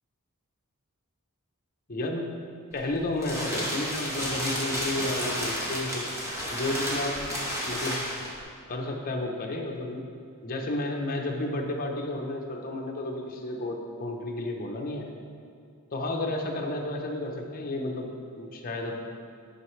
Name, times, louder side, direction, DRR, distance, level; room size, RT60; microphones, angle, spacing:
voice 1, 1.9-2.3 2.7-6.0 6.5-7.3 7.6-8.0 8.7-10.0 10.4-15.1 15.9-19.0, left 1 dB, 40° left, 1 dB, 0.8 m, -32 dB
sound 1, 2.7-8.4, equal, 15° right, 1.3 m, -32 dB
9.4 x 5.6 x 3.2 m, 2.4 s
head